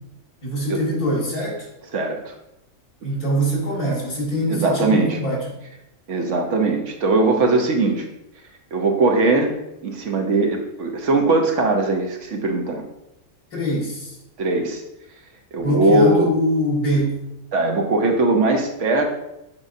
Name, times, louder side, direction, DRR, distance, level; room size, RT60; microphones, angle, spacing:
voice 1, 0.4-1.6 3.0-5.4 13.5-14.1 15.6-17.1, equal, 85° left, -3 dB, 2.6 m, -23 dB
voice 2, 1.9-2.3 4.5-5.2 6.1-8.0 8.7-9.6 9.8-12.8 14.4-14.8 15.5-16.3 17.5-19.0, right 2 dB, 60° right, 3 dB, 1.0 m, -20 dB
7.3 x 5.1 x 2.6 m, 0.88 s
omnidirectional pair, 1.5 m